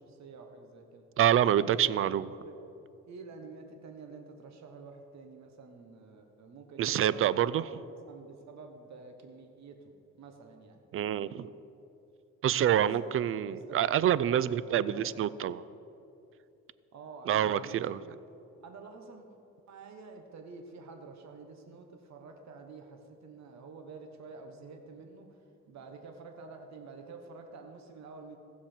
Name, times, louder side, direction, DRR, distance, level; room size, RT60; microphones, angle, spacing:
voice 1, 0.0-1.0 1.4-1.9 2.4-2.6 3.1-9.8 10.1-10.8 12.4-15.6 16.9-18.1 18.6-19.3 19.7-25.4 25.7-28.4, right 4 dB, 65° right, 4 dB, 1.2 m, -49 dB
voice 2, 1.2-2.4 6.8-7.6 10.9-11.5 12.4-15.6 17.3-18.0, right 10 dB, 45° right, 18 dB, 0.4 m, -27 dB
15.5 x 7.3 x 4.4 m, 2.7 s
cardioid pair, 90°, 30 cm